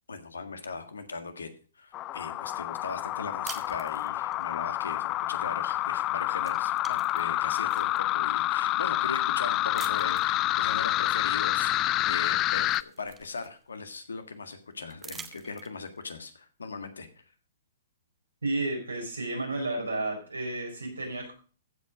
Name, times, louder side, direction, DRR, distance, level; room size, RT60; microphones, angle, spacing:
voice 1, 0.1-17.2, left 4 dB, 85° left, 8 dB, 1.7 m, -39 dB
sound 1, 1.9-12.8, left 15 dB, 30° left, 0.4 m, -28 dB
sound 2, 3.4-4.4 5.8-6.1 6.4-8.0 8.6-8.7 9.7-10.4 11.8-11.9 12.3-13.8 14.9-16.0, right 6 dB, 15° right, 1.0 m, -46 dB
voice 2, 18.4-21.3, right 2 dB, 90° right, 1 dB, 4.5 m, -32 dB
15.0 x 5.1 x 5.0 m, 0.37 s
hypercardioid pair, 120°, 0 cm